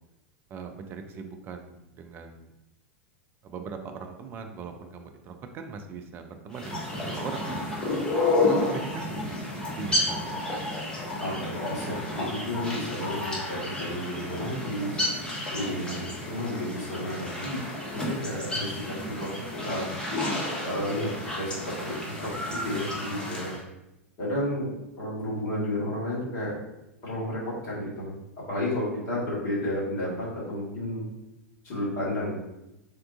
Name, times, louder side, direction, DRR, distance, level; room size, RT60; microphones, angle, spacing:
voice 1, 0.5-2.5 3.4-9.3 9.8-10.3, right 5 dB, 30° right, 6 dB, 0.4 m, -40 dB
sound 1, 6.5-23.6, left 2 dB, 10° left, 0.8 m, -31 dB
voice 2, 11.2-15.0 15.5-17.6 17.9-19.9 20.6-23.5 24.2-24.7 25.0-26.5 27.0-28.1 28.5-31.1 31.6-32.3, left 1 dB, 45° left, -7 dB, 1.5 m, -32 dB
3.5 x 2.3 x 2.5 m, 0.91 s
figure-of-eight pair, 90°, 7 cm